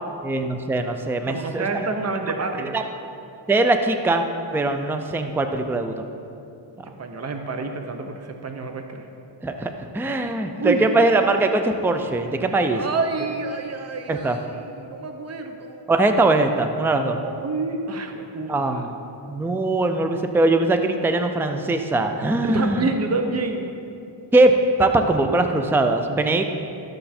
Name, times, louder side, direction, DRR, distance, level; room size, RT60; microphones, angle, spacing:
voice 1, 0.2-1.7 2.6-2.8 3.5-4.2 4.5-6.1 9.4-12.8 14.1-14.4 15.9-17.2 18.5-18.9 19.3-22.9 24.3-26.4, right 2 dB, 5° right, 6 dB, 0.4 m, -21 dB
voice 2, 1.3-2.8 7.0-9.1 10.6-10.9 12.7-15.9 17.0-18.8 22.4-23.7, right 3 dB, 35° right, 5 dB, 0.8 m, -28 dB
13.0 x 6.6 x 4.3 m, 2.7 s
wide cardioid pair, 120°, 45 cm